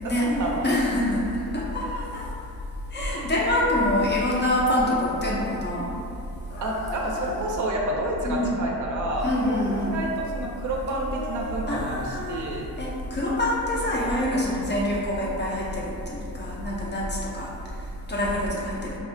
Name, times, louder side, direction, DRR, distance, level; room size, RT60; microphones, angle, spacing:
voice 1, 0.0-0.7 6.6-9.3 9.9-12.7, right 1 dB, 55° right, -1 dB, 0.5 m, -29 dB
voice 2, 0.6-2.2 2.9-5.9 8.2-8.5 9.2-10.0 11.7-12.4 12.8-17.5 18.1-19.0, left 1 dB, 30° left, -4 dB, 0.4 m, -25 dB
sound 1, 6.5-7.5 9.2-9.9 10.9-11.6 13.7-13.8 14.6-14.7 15.7-15.8, left 1 dB, 80° left, 0.7 m, -37 dB
3.4 x 2.0 x 2.5 m, 2.7 s
cardioid pair, 110°, 38 cm